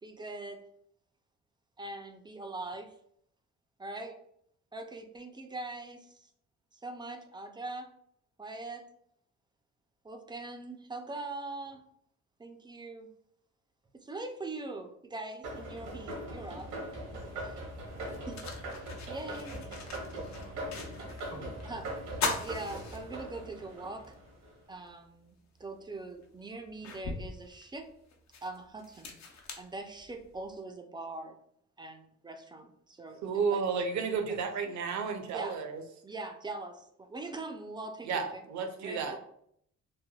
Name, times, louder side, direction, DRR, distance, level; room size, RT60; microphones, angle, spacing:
voice 1, 0.0-0.6 1.8-2.9 3.8-4.2 4.7-6.3 6.7-7.9 8.4-8.8 10.0-11.8 12.4-13.1 13.9-16.7 17.4-17.6 18.3-18.4 19.1-19.7 21.7-21.9 22.4-24.1 24.7-25.3 25.6-27.9 28.4-29.1 29.6-31.4 31.8-33.2 33.5-33.6 35.3-35.6 36.0-38.4 38.8-39.2, right 2 dB, 15° right, 5 dB, 0.3 m, -42 dB
sound 1, 15.4-24.5, right 1 dB, 90° right, 1.0 m, -41 dB
voice 2, 16.9-17.2 17.9-18.6 19.3-21.6 33.8-34.4, left 1 dB, 45° left, -4 dB, 1.0 m, -53 dB
sound 2, 17.3-17.4 17.9-21.3 21.6-21.7 22.1-23.6 24.0-24.1 25.6-25.7 26.2-30.4, left 4 dB, 65° left, 0.6 m, -40 dB
voice 3, 33.2-35.8 38.1-39.2, right 5 dB, 70° right, 6 dB, 0.5 m, -32 dB
3.2 x 2.1 x 2.3 m, 0.69 s
cardioid pair, 90°, 30 cm